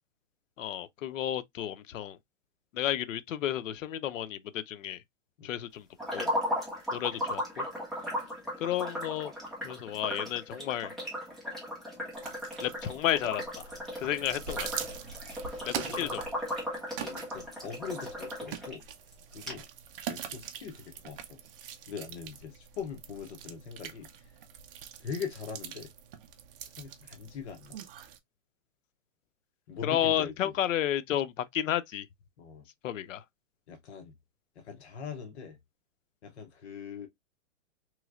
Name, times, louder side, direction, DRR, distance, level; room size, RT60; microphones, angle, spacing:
voice 1, 0.6-2.2 2.7-5.0 5.4-5.9 6.1-6.3 6.9-7.6 8.6-9.3 9.6-10.9 12.6-13.7 14.0-14.7 15.6-16.2 29.8-32.1 32.8-33.2, left 11 dB, 85° left, 0.6 m, -32 dB
sound 1, 6.0-18.8 19.1-19.2 19.5-19.6, equal, ahead, 0.8 m, -36 dB
sound 2, 12.1-28.2, right 8 dB, 45° right, 0.6 m, -44 dB
voice 2, 15.5-16.2 16.5-16.7 17.0-18.8 19.3-19.6 20.1-21.4 21.9-24.1 25.0-25.9 26.8-27.8 29.7-30.5 32.4-32.6 33.7-34.1 34.6-35.6 36.2-37.1, left 6 dB, 60° left, 0.9 m, -41 dB
3.1 x 3.1 x 2.4 m
hypercardioid pair, 150°, 38 cm